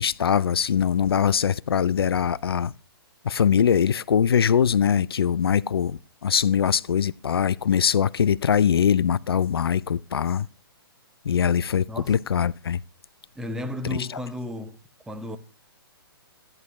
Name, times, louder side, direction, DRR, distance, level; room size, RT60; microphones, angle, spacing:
voice 1, 0.0-2.7 3.3-10.5 11.3-12.8 13.9-14.0, left 8 dB, 75° left, 0.4 m, -22 dB
voice 2, 11.9-12.2 13.4-14.8 15.1-15.4, left 1 dB, 5° right, 0.9 m, -33 dB
13.5 x 9.8 x 3.1 m
hypercardioid pair, 125°, 13 cm